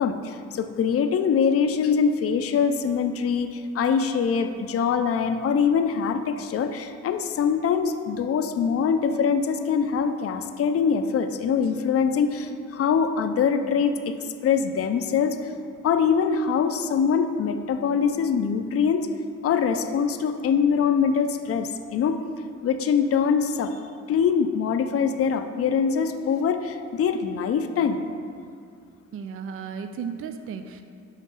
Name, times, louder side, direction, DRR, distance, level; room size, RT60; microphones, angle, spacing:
voice 1, 0.0-14.1 14.4-15.4 15.8-19.1 19.4-22.2 22.6-23.8 24.1-28.0, left 6 dB, 50° left, 8 dB, 0.5 m, -23 dB
voice 2, 29.1-30.8, right 6 dB, 45° right, 8 dB, 0.4 m, -34 dB
6.3 x 5.2 x 5.5 m, 2.3 s
cardioid pair, 90°, 30 cm